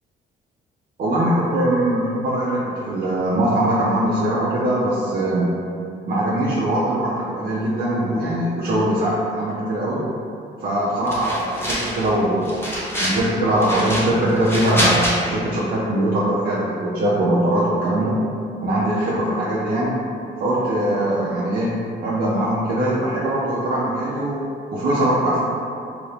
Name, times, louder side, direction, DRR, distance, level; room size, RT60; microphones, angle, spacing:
voice 1, 1.0-5.5 6.1-10.0 10.6-12.6 13.0-18.1 18.6-20.0 20.4-24.4 24.7-25.5, right 1 dB, 50° right, -8 dB, 0.6 m, -21 dB
sound 1, 11.1-12.1 12.4-13.2 13.6-15.1, equal, 10° left, 0.8 m, -25 dB
2.9 x 2.6 x 3.2 m, 2.5 s
cardioid pair, 90°, 20 cm